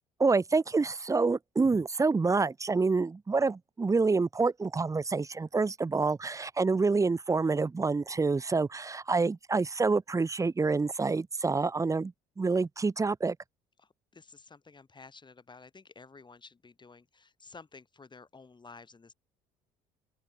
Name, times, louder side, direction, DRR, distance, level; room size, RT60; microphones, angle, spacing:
voice 1, 0.2-13.4, right 4 dB, 20° right, 0.7 m, -27 dB
voice 2, 13.8-19.1, left 4 dB, 25° left, 3.8 m, -52 dB
open air
hypercardioid pair, 70°, 17 cm